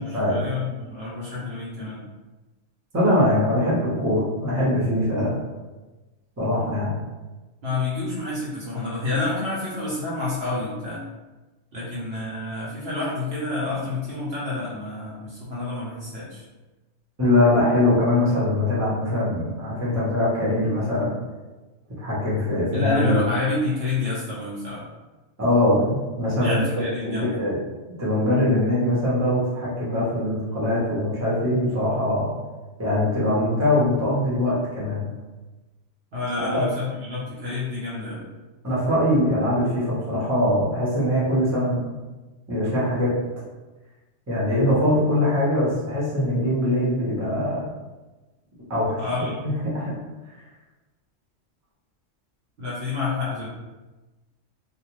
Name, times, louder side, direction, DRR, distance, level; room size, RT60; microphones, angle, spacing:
voice 1, 0.0-2.0 7.6-11.0 11.7-16.4 22.7-24.8 26.4-27.4 36.1-38.3 49.0-49.4 52.6-53.5, left 3 dB, 55° right, -7 dB, 0.9 m, -28 dB
voice 2, 2.9-5.4 6.4-6.9 17.2-21.1 22.0-23.2 25.4-26.6 27.0-27.6 28.0-32.3 32.8-35.1 36.4-36.6 38.6-41.8 42.5-43.1 44.3-47.6 48.7-49.9, left 1 dB, 15° right, -8 dB, 0.7 m, -22 dB
2.5 x 2.2 x 3.0 m, 1.2 s
omnidirectional pair, 1.4 m